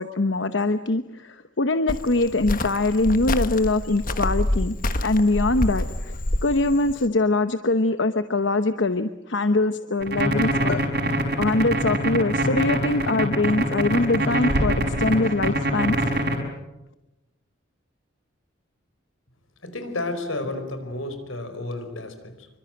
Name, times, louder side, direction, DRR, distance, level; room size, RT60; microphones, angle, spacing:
voice 1, 0.0-4.8 5.0-6.1 6.4-10.8 11.4-16.0, left 2 dB, 65° left, 10 dB, 1.0 m, -23 dB
Cricket, 1.9-7.1, left 1 dB, 40° left, 1.5 m, -27 dB
sound 1, 10.0-16.4, right 1 dB, 55° right, 5.4 m, -24 dB
voice 2, 19.6-22.5, left 2 dB, 90° left, 9 dB, 4.8 m, -31 dB
27.5 x 24.5 x 7.9 m, 0.97 s
head